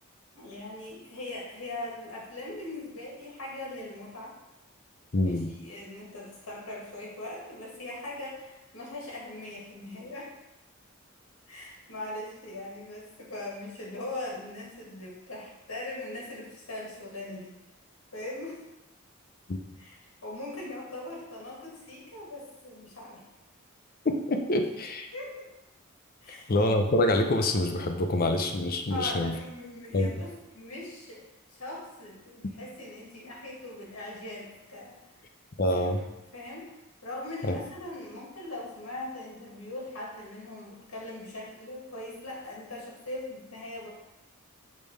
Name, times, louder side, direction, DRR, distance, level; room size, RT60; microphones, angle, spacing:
voice 1, 0.3-4.4 5.2-10.3 11.5-17.5 18.1-18.6 19.8-23.2 25.1-25.5 26.2-26.5 28.9-31.2 31.5-35.0 35.7-35.9 36.3-36.7 37.0-43.9, left 2 dB, 80° left, -3 dB, 1.9 m, -40 dB
voice 2, 5.1-5.5 19.5-19.6 24.0-25.1 26.3-29.3 29.9-30.2 35.6-36.0 37.4-37.6, left 1 dB, 45° left, 5 dB, 0.6 m, -26 dB
5.3 x 3.4 x 5.4 m, 0.98 s
head